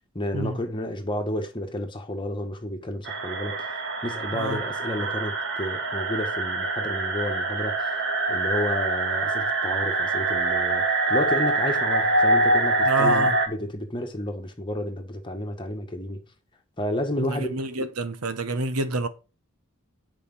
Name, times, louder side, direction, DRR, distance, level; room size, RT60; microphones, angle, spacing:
voice 1, 0.1-3.7 4.0-7.9 8.3-16.2 16.8-17.5 17.8-17.9, left 1 dB, 20° left, 1.4 m, -31 dB
sound 1, 3.1-13.5, right 2 dB, 55° right, 1.5 m, -25 dB
voice 2, 12.8-13.3 17.2-19.1, right 2 dB, 85° right, 1.0 m, -28 dB
8.6 x 5.0 x 5.5 m
head